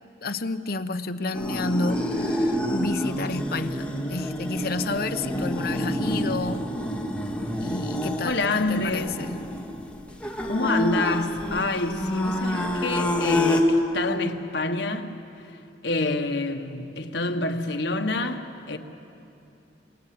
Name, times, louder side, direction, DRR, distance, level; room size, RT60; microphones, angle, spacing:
voice 1, 0.2-6.6 7.6-9.4, left 3 dB, 60° left, 0.9 m, -30 dB
sound 1, 1.3-13.6, left 1 dB, 5° left, 2.1 m, -28 dB
voice 2, 8.2-9.2 10.4-15.1 15.8-18.8, left 2 dB, 75° left, 1.5 m, -27 dB
27.5 x 23.5 x 7.8 m
head